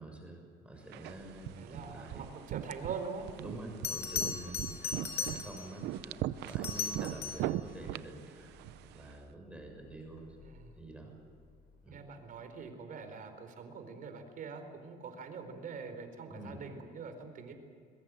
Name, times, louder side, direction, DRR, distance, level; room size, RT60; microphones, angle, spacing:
voice 1, 0.0-2.3 3.4-10.4 10.8-11.1 11.8-12.0 16.3-16.6, right 1 dB, 5° right, 2 dB, 6.7 m, -47 dB
sound 1, 0.9-9.1, right 14 dB, 85° right, 0.7 m, -40 dB
voice 2, 1.6-3.3 10.4-10.8 11.9-17.5, right 5 dB, 55° right, 7 dB, 4.3 m, -44 dB
Bell, 3.2-3.3 3.8-5.8 6.5-7.6 10.2-10.5, left 7 dB, 75° left, 4.5 m, -37 dB
22.5 x 22.0 x 7.7 m, 2.3 s
cardioid pair, 110°, 17 cm